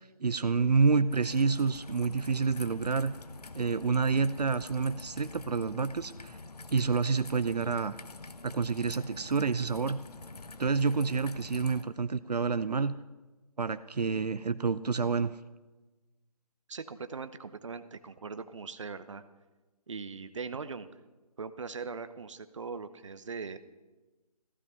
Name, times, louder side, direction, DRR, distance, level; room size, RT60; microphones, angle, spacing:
voice 1, 0.2-3.1 3.5-6.4 6.7-8.0 8.4-10.0 10.6-12.9 13.6-15.3, right 5 dB, 80° right, 13 dB, 0.7 m, -28 dB
Raindrop / Trickle dribble, 1.1-11.8, left 3 dB, 75° left, 1.1 m, -47 dB
voice 2, 16.7-19.2 19.9-20.9 21.4-23.6, right 5 dB, 50° right, 11 dB, 0.9 m, -40 dB
15.0 x 13.5 x 5.6 m, 1.2 s
figure-of-eight pair, 165°, 20 cm